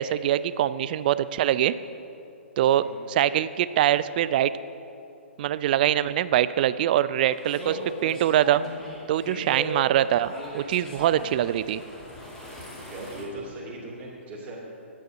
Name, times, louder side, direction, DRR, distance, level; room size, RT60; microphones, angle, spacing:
voice 1, 0.0-1.7 2.6-4.5 5.4-8.6 9.1-11.8, right 11 dB, 45° right, 16 dB, 0.3 m, -23 dB
voice 2, 2.8-3.1 9.2-9.4 12.8-14.6, right 1 dB, 25° right, -5 dB, 2.7 m, -39 dB
sound 1, 7.3-13.2, equal, 10° left, 2.3 m, -39 dB
9.0 x 8.6 x 5.5 m, 2.7 s
hypercardioid pair, 130°, 7 cm